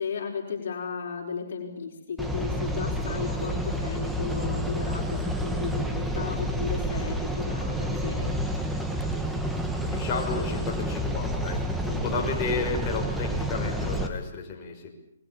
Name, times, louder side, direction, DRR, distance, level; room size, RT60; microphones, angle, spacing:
voice 1, 0.0-8.4, left 6 dB, 65° left, 2 dB, 5.1 m, -35 dB
sound 1, 2.2-14.1, equal, 5° right, 2.4 m, -29 dB
voice 2, 9.9-14.9, left 5 dB, 30° left, 0 dB, 6.1 m, -32 dB
27.5 x 22.0 x 7.3 m, 0.74 s
hypercardioid pair, 145°, 0 cm